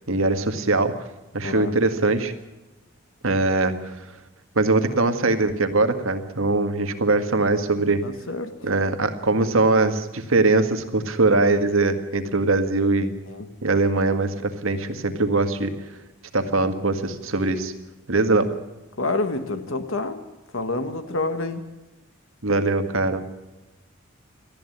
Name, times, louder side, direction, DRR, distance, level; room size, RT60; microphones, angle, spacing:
voice 1, 0.1-0.9 1.3-2.3 3.2-3.7 4.6-8.0 8.6-13.1 13.6-15.7 16.3-17.7 18.1-18.5 22.4-23.2, right 3 dB, 75° right, 8 dB, 1.8 m, -21 dB
voice 2, 8.0-8.5 13.3-13.5 19.0-20.2 20.5-21.7, left 2 dB, 70° left, 9 dB, 1.4 m, -28 dB
19.5 x 14.0 x 9.8 m, 1.1 s
head